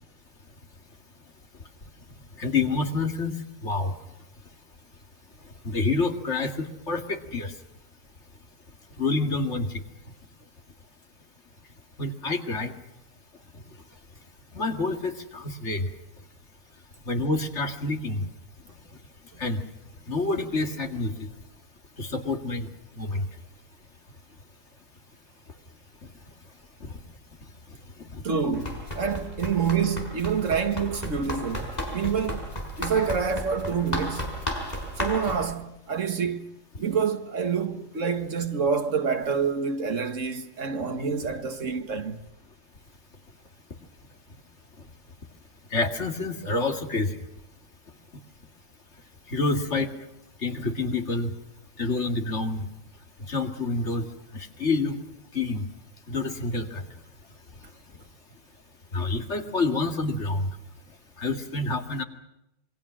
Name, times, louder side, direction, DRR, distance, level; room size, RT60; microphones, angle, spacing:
voice 1, 2.4-3.3 3.6-3.9 5.6-7.5 9.0-9.8 12.0-12.7 14.5-15.9 17.1-18.2 19.4-19.6 20.1-21.3 22.0-22.7 23.0-23.2 26.8-26.9 28.1-28.2 45.7-47.1 49.3-49.9 50.4-51.3 51.8-52.6 53.3-54.1 54.3-55.0 55.3-55.7 56.1-56.8 58.9-60.5 61.2-62.0, left 3 dB, 65° left, 2.4 m, -27 dB
voice 2, 28.2-32.5 32.8-34.3 35.0-42.2, right 6 dB, 85° right, 1.9 m, -27 dB
Run, 28.5-35.4, left 1 dB, 35° left, 4.8 m, -34 dB
27.5 x 22.5 x 6.3 m
omnidirectional pair, 1.3 m